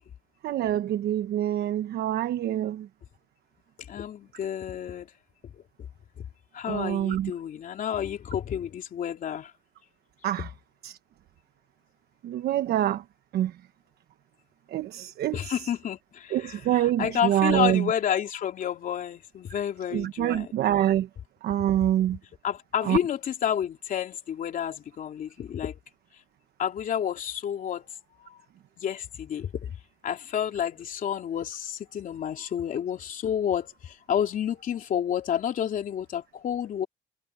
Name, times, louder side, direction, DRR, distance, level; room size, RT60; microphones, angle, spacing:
voice 1, 0.4-2.9 6.7-7.3 10.2-10.5 10.8-11.0 12.2-13.0 13.3-13.5 14.7-15.5 16.3-17.9 19.9-21.1 21.4-22.2 22.8-23.0, right 12 dB, 65° right, 1.2 m, -26 dB
voice 2, 3.9-5.1 5.5-5.6 6.5-9.5 15.3-20.5 22.4-25.8 26.6-27.9 28.3-28.4 28.8-29.5 30.0-36.9, left 9 dB, 55° left, 3.3 m, -30 dB
cardioid pair, 110°, 17 cm